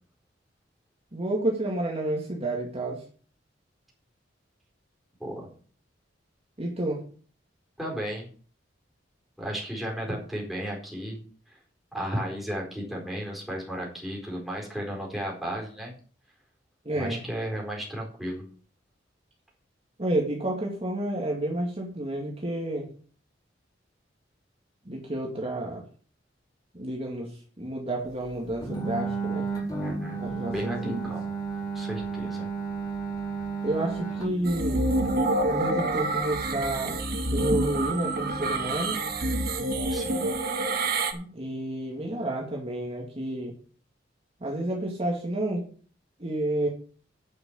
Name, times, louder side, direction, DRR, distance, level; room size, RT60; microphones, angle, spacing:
voice 1, 1.1-3.0 6.6-7.0 16.8-17.3 20.0-22.9 24.9-25.8 26.7-29.5 30.2-31.1 33.6-34.9 35.5-37.0 37.3-39.0 41.1-43.5 44.4-45.7 46.2-46.7, right 1 dB, 35° right, -1 dB, 2.2 m, -30 dB
voice 2, 7.8-8.3 9.4-11.2 11.5-11.6 11.9-15.9 16.9-18.4 29.8-31.3 31.7-32.5 39.9-40.3, equal, ahead, -3 dB, 4.2 m, -34 dB
sound 1, 28.6-39.4, right 4 dB, 20° left, 4.3 m, -34 dB
sound 2, 34.4-41.1, right 2 dB, 55° right, 1.5 m, -27 dB
9.8 x 6.3 x 7.1 m, 0.43 s
head